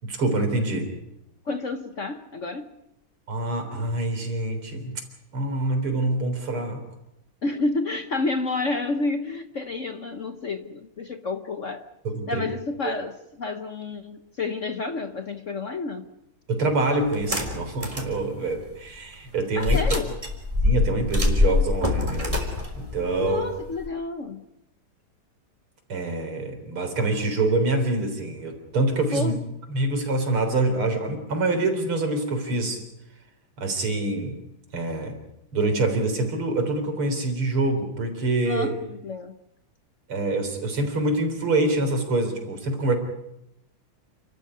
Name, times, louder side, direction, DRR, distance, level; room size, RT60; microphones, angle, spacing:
voice 1, 0.0-0.9 3.3-5.0 5.3-6.8 12.0-12.5 12.8-12.9 16.5-19.8 20.6-23.4 25.9-29.3 29.7-32.8 33.6-34.4 34.7-35.2 35.5-38.7 40.1-42.9, right 2 dB, 90° right, 6 dB, 4.7 m, -25 dB
voice 2, 1.5-2.7 7.4-11.9 12.3-16.0 19.6-20.1 23.2-24.4 29.1-29.4 38.4-39.4, left 3 dB, 45° left, 8 dB, 1.1 m, -30 dB
sound 1, 17.1-18.1 18.6-18.7 19.6-23.9, left 3 dB, 15° right, 3.7 m, -24 dB
29.5 x 13.5 x 9.6 m, 0.84 s
omnidirectional pair, 2.3 m